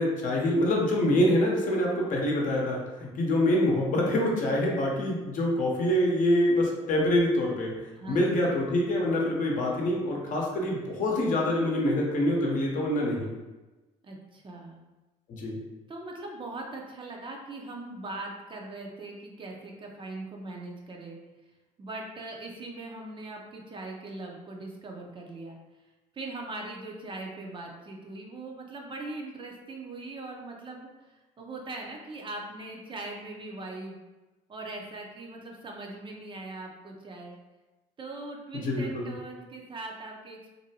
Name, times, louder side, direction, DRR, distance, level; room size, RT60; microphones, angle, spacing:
voice 1, 0.0-7.7 8.1-13.3 15.3-15.6 38.5-39.1, left 1 dB, 55° left, -2 dB, 0.8 m, -25 dB
voice 2, 14.0-14.8 15.9-21.2 21.8-25.6 26.1-34.0 34.5-37.3 38.0-40.5, right 2 dB, 35° right, 0 dB, 0.6 m, -40 dB
2.6 x 2.1 x 2.8 m, 1.1 s
supercardioid pair, 75°, 16 cm